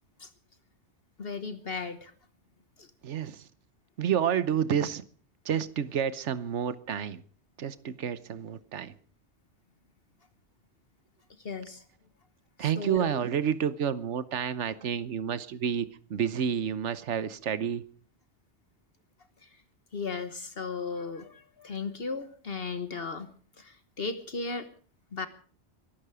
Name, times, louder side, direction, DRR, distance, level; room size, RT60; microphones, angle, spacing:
voice 1, 1.2-2.1 2.8-2.9 11.4-11.8 12.6-13.2 19.4-19.6 19.9-24.7 25.1-25.3, left 4 dB, 60° left, 11 dB, 1.4 m, -36 dB
voice 2, 3.0-3.5 4.0-5.0 5.4-7.2 7.6-8.9 12.6-17.8, right 8 dB, 85° right, 15 dB, 1.3 m, -29 dB
23.0 x 12.5 x 4.9 m, 0.42 s
omnidirectional pair, 1.2 m